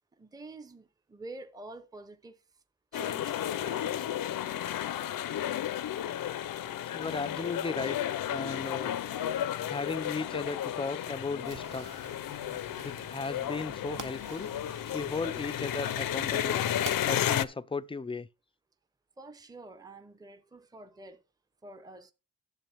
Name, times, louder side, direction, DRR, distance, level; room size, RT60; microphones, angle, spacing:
voice 1, 0.1-2.6 2.9-4.1 12.9-13.1 19.2-21.2 21.6-22.1, right 2 dB, 10° right, 0.7 m, -48 dB
sound 1, 2.9-17.4, left 11 dB, 70° left, 0.6 m, -33 dB
voice 2, 6.9-8.0 8.3-9.0 9.7-11.9 12.8-14.5 14.9-16.6 17.0-18.3, left 4 dB, 15° left, 0.4 m, -35 dB
sound 2, 11.4-17.2, right 6 dB, 60° right, 0.9 m, -48 dB
10.5 x 7.0 x 3.4 m
cardioid pair, 80°, 35 cm